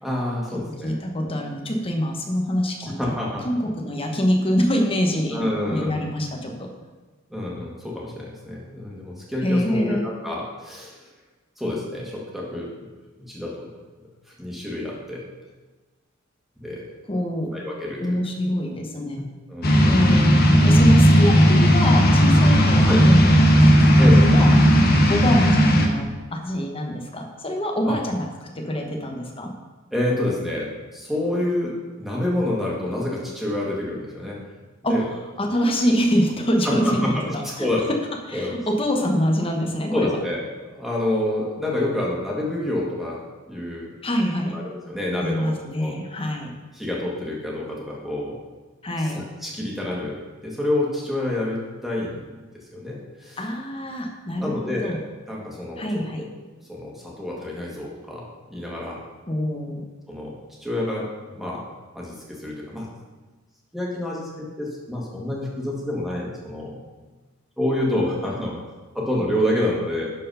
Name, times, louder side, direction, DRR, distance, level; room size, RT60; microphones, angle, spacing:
voice 1, 0.0-0.9 1.2-1.5 2.8-3.5 5.3-5.9 7.3-11.0 11.6-12.9 13.2-13.7 14.4-15.2 16.6-16.8 17.5-18.2 18.9-20.1 22.9-23.0 24.0-24.2 27.9-28.0 29.9-34.4 34.9-35.1 36.7-37.9 38.3-38.5 39.9-43.2 43.5-43.9 44.5-45.9 46.7-48.4 49.0-53.4 54.4-55.0 55.3-55.8 56.2-56.3 56.7-59.0 60.1-60.3 60.6-61.7 62.0-62.9 63.7-66.8 67.6-68.6 68.9-70.1, left 1 dB, ahead, -4 dB, 1.9 m, -28 dB
voice 2, 0.8-3.0 3.4-6.7 9.4-10.0 17.1-17.5 18.0-19.2 19.8-20.4 20.6-24.6 25.1-29.5 34.8-35.0 35.4-37.7 38.3-40.2 44.0-44.5 45.2-46.5 48.8-49.2 53.4-55.0 55.8-56.2 59.3-59.8, equal, 25° left, 2 dB, 1.2 m, -25 dB
sound 1, 19.6-25.9, equal, 45° left, 1.1 m, -15 dB
11.0 x 4.6 x 5.6 m, 1.3 s
head